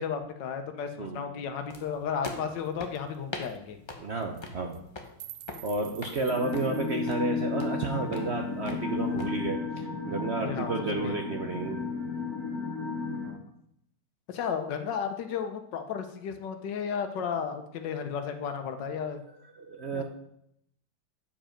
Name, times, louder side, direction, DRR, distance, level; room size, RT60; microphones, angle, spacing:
voice 1, 0.0-3.8 10.4-11.2 13.2-13.4 14.3-19.2 19.9-20.0, left 7 dB, 80° left, 7 dB, 1.5 m, -34 dB
sound 1, 1.7-9.3, left 3 dB, 30° left, 0.5 m, -44 dB
sound 2, 2.7-2.8 3.0-3.2 3.4-3.6 4.2-4.4 4.7-7.1, right 13 dB, 80° right, 1.2 m, -48 dB
voice 2, 4.0-4.8 5.6-11.8 19.6-20.0, right 3 dB, 55° right, 3 dB, 0.7 m, -32 dB
sound 3, 6.3-13.3, left 4 dB, 55° left, 2.0 m, -33 dB
8.6 x 5.1 x 5.1 m, 0.74 s
omnidirectional pair, 1.9 m